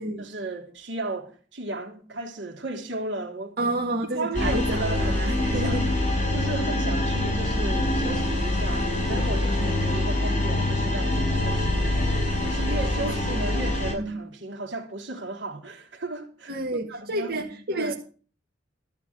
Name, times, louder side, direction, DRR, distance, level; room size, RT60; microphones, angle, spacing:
voice 1, 0.2-3.7 4.1-5.8 6.3-12.1 12.4-17.9, right 2 dB, 80° right, 3.1 m, -35 dB
voice 2, 3.6-5.9 13.0-13.5 14.0-14.2 16.5-17.9, right 1 dB, 55° right, 2.1 m, -30 dB
sound 1, 4.3-13.9, left 1 dB, 45° left, 6.0 m, -25 dB
14.0 x 5.9 x 7.9 m
head